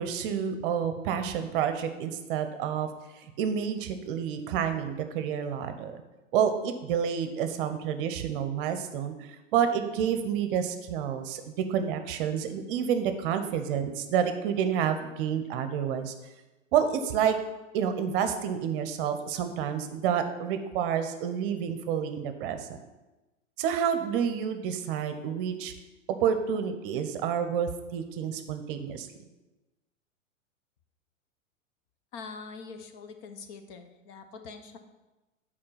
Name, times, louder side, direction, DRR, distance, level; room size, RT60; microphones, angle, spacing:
voice 1, 0.0-2.9 3.4-6.0 6.3-9.1 9.5-16.1 16.7-17.4 17.7-22.7 23.6-25.7 26.2-29.1, right 8 dB, 45° right, 8 dB, 0.8 m, -29 dB
voice 2, 32.1-34.8, left 4 dB, 35° left, 7 dB, 0.8 m, -44 dB
8.7 x 4.6 x 5.7 m, 1.1 s
figure-of-eight pair, 105°, 39 cm